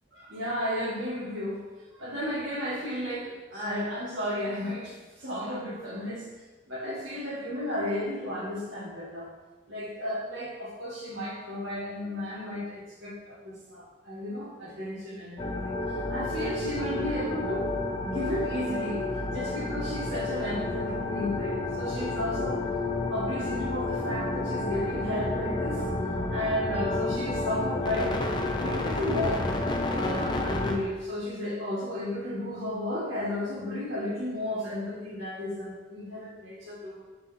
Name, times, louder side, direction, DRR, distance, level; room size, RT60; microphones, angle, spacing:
voice 1, 0.1-1.6 1.9-6.3 6.7-9.3 9.7-15.8 16.1-17.7 18.0-19.1 19.3-22.7 23.1-25.9 26.3-29.6 29.9-37.0, left 1 dB, 80° right, -6 dB, 1.9 m, -33 dB
sound 1, 15.4-30.8, left 2 dB, 25° left, 0.5 m, -30 dB
6.7 x 5.7 x 2.8 m, 1.2 s
head